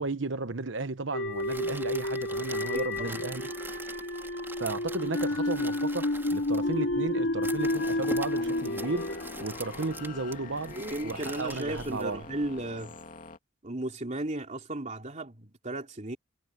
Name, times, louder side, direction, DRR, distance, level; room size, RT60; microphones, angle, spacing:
voice 1, 0.0-3.4 4.6-10.7 11.0-12.2, right 3 dB, 65° right, 1.1 m, -34 dB
sound 1, 1.1-10.3, left 1 dB, 85° left, 2.1 m, -31 dB
sound 2, 1.3-12.6, right 2 dB, 10° right, 3.6 m, -45 dB
voice 2, 2.7-3.2 10.7-13.0 13.6-16.2, right 1 dB, 40° right, 3.3 m, -35 dB
sound 3, 6.2-13.4, left 3 dB, 45° left, 2.8 m, -45 dB
head